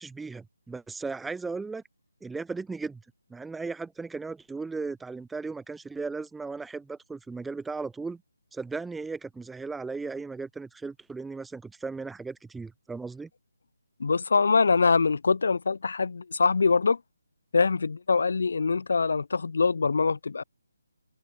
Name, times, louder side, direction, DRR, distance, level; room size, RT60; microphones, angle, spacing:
voice 1, 0.0-1.8 2.2-3.0 3.3-8.2 8.5-13.3, right 4 dB, 5° right, 1.3 m, -36 dB
voice 2, 14.0-17.0 17.5-20.4, left 4 dB, 50° left, 2.2 m, -24 dB
figure-of-eight pair, 150°, 0 cm